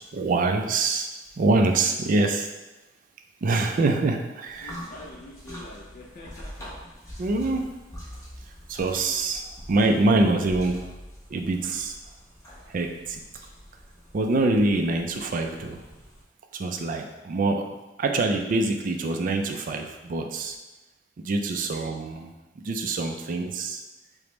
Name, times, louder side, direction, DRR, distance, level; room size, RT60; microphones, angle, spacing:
voice 1, 0.1-1.1 1.4-2.5 3.4-4.8 7.2-7.7 8.7-10.8 11.3-12.0 12.7-13.2 14.1-15.8 16.5-17.7 18.0-20.6 21.2-23.8, right 2 dB, 45° right, 4 dB, 0.4 m, -25 dB
sound 1, 4.5-16.2, equal, 20° left, 0.8 m, -44 dB
voice 2, 4.6-6.7 21.5-21.7, left 2 dB, 50° left, -2 dB, 0.4 m, -45 dB
4.9 x 2.1 x 3.0 m, 1.1 s
head